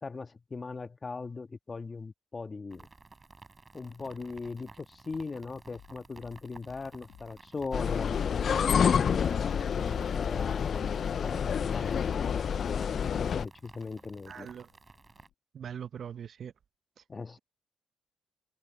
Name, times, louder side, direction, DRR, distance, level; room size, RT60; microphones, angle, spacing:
voice 1, 0.0-2.9 3.7-14.5 17.1-17.4, left 4 dB, 30° left, 1.5 m, -39 dB
sound 1, 2.7-15.3, right 3 dB, 25° right, 5.4 m, -55 dB
sound 2, 5.7-15.3, left 11 dB, 80° left, 1.5 m, -57 dB
sound 3, 7.7-13.5, left 7 dB, 55° left, 0.3 m, -28 dB
voice 2, 14.3-14.7 15.5-16.5, right 8 dB, 55° right, 0.7 m, -41 dB
cardioid pair, 90°, 0 cm